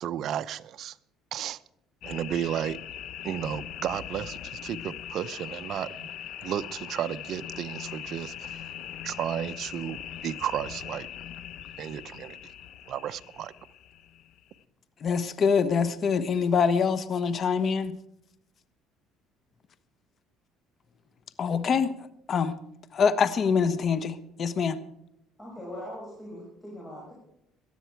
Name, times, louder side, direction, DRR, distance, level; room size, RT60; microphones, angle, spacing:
voice 1, 0.0-1.0 1.3-1.6 2.0-2.8 3.2-6.1 6.4-11.1 11.8-12.5 12.9-13.5, right 10 dB, 55° right, 0.6 m, -33 dB
sound 1, 2.0-14.6, left 10 dB, 65° left, 0.9 m, -41 dB
voice 2, 15.0-18.0 21.4-21.9 22.3-22.6 22.9-24.8, left 6 dB, 40° left, 1.1 m, -25 dB
voice 3, 25.4-27.1, equal, 10° left, 6.3 m, -41 dB
18.0 x 13.0 x 4.6 m
cardioid pair, 125°, 0 cm